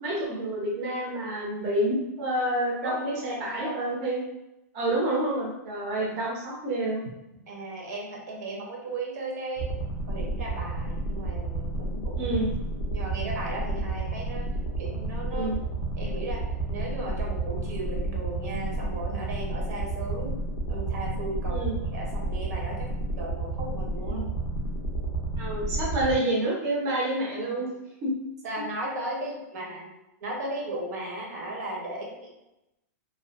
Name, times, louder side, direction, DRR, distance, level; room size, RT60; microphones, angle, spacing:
voice 1, 0.0-4.2 4.7-7.0 12.2-12.5 15.3-15.6 21.5-21.8 24.0-24.3 25.4-27.7 28.0-28.1, right 1 dB, 25° right, -5 dB, 0.5 m, -28 dB
voice 2, 2.8-3.9 6.1-6.2 7.5-9.8 10.1-12.3 12.8-14.5 14.8-15.5 16.0-20.4 20.7-21.6 21.9-22.9 23.2-24.2 27.4-27.6 28.4-29.9 30.2-32.3, right 2 dB, 70° right, -1 dB, 0.8 m, -36 dB
sound 1, 9.6-26.1, right 2 dB, 25° left, 0.4 m, -31 dB
2.5 x 2.3 x 2.3 m, 0.92 s
supercardioid pair, 180°, 9 cm